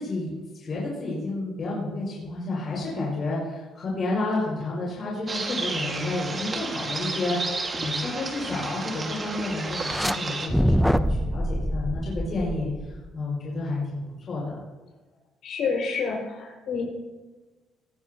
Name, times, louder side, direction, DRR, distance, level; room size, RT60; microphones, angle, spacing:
voice 1, 0.0-14.6, left 2 dB, 30° left, -4 dB, 5.0 m, -30 dB
sound 1, 5.3-10.5, right 3 dB, 20° right, 1.5 m, -32 dB
sound 2, 9.7-10.2 10.5-13.1, equal, ahead, 0.4 m, -25 dB
voice 2, 15.4-16.8, left 5 dB, 55° left, -3 dB, 4.9 m, -28 dB
18.5 x 16.0 x 2.7 m, 1.2 s
cardioid pair, 180°, 0 cm